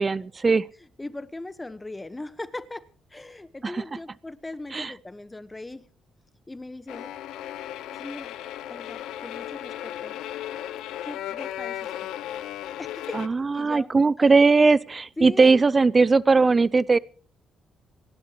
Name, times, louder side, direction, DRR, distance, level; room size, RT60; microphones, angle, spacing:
voice 1, 0.0-0.6 4.7-4.9 13.2-17.0, right 4 dB, 30° right, 0.6 m, -19 dB
voice 2, 0.8-5.8 6.5-7.1 7.9-8.4 8.7-10.2 11.0-12.1 12.8-13.2 13.5-13.9 14.2-14.4 15.2-15.6, left 2 dB, 15° left, 1.1 m, -39 dB
sound 1, 6.9-13.3, left 12 dB, 90° left, 0.9 m, -35 dB
27.5 x 11.5 x 3.0 m
cardioid pair, 90°, 0 cm